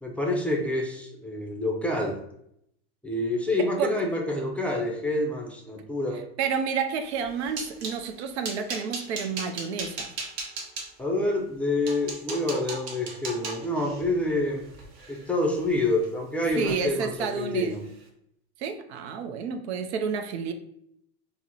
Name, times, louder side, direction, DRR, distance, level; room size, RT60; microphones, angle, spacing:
voice 1, 0.0-2.2 3.0-6.2 11.0-14.7 15.1-17.8, left 2 dB, 5° left, 0 dB, 0.4 m, -27 dB
voice 2, 3.6-3.9 6.4-10.1 16.6-17.7 18.6-20.5, right 6 dB, 85° right, 7 dB, 0.5 m, -30 dB
sound 1, 7.1-8.0 8.4-10.9 11.5-11.6 11.9-16.1 16.4-16.8 17.1-17.3 17.7-17.9, right 3 dB, 55° right, 0.9 m, -37 dB
2.9 x 2.0 x 3.7 m, 0.73 s
supercardioid pair, 115°, 32 cm